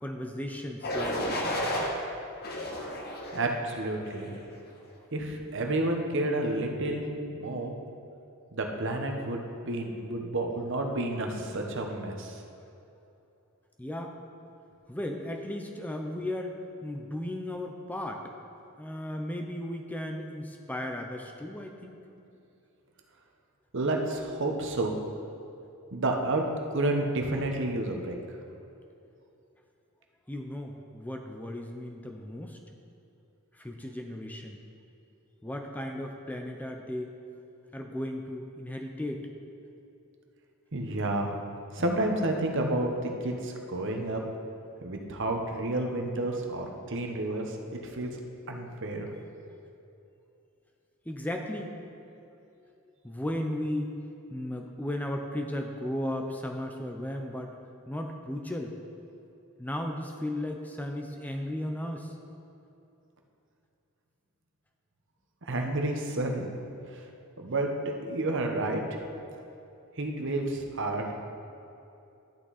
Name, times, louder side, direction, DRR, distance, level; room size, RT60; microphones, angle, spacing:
voice 1, 0.0-1.5 13.8-14.1 14.9-16.6 16.8-18.2 18.8-22.0 30.3-32.6 33.5-34.6 35.4-37.1 37.7-39.2 51.1-51.8 52.6-52.7 53.0-53.9 54.3-57.5 57.9-58.7 59.6-62.1, left 1 dB, 5° left, 3 dB, 0.6 m, -35 dB
sound 1, 0.8-1.9 2.4-3.5 4.0-4.4, left 1 dB, 45° left, 1.3 m, -32 dB
voice 2, 3.3-4.3 5.1-7.1 7.4-7.7 8.5-12.4 23.7-24.9 25.9-28.2 40.7-41.3 41.7-44.2 44.8-48.1 48.5-49.1 65.5-66.5 67.4-68.8 70.0-71.2, right 2 dB, 55° right, 3 dB, 1.1 m, -30 dB
12.0 x 8.7 x 4.1 m, 2.8 s
head